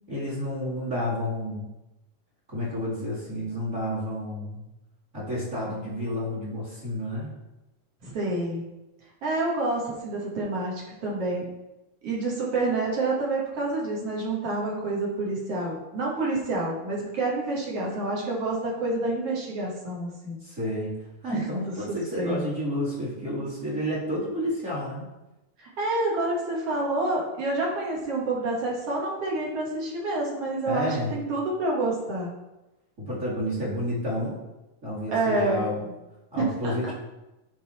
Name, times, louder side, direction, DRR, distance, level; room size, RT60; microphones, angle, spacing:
voice 1, 0.1-1.7 2.5-4.6 5.1-7.3 20.4-20.9 21.2-25.1 30.7-31.2 33.0-34.4 34.8-35.9 36.3-36.9, left 1 dB, 25° right, -6 dB, 2.1 m, -30 dB
voice 2, 8.0-8.6 9.2-11.5 12.0-20.4 21.3-22.4 25.6-32.3 35.1-35.6 36.4-36.9, right 2 dB, 55° right, -4 dB, 2.5 m, -28 dB
10.0 x 4.0 x 4.2 m, 0.99 s
omnidirectional pair, 3.7 m